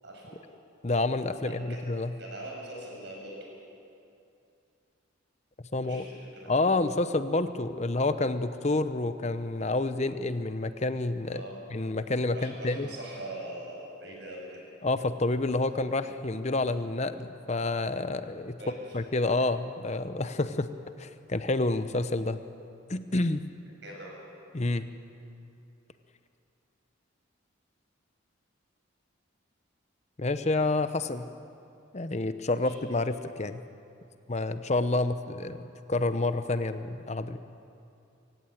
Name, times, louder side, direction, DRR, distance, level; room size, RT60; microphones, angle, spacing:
voice 1, 0.0-0.4 1.4-1.8 2.2-3.5 5.7-6.5 11.2-11.6 12.3-14.6 18.6-19.0 23.8-24.1 32.6-32.7 35.2-35.4, right 1 dB, 60° right, -2 dB, 7.0 m, -42 dB
voice 2, 0.8-2.1 5.7-6.1 6.5-11.4 11.7-12.9 14.8-18.6 18.9-20.7 21.0-22.4 22.9-23.4 24.5-24.9 30.2-31.3 31.9-33.6 34.3-35.6 35.9-37.4, left 2 dB, 35° left, 11 dB, 0.7 m, -28 dB
23.5 x 16.0 x 9.2 m, 2.6 s
head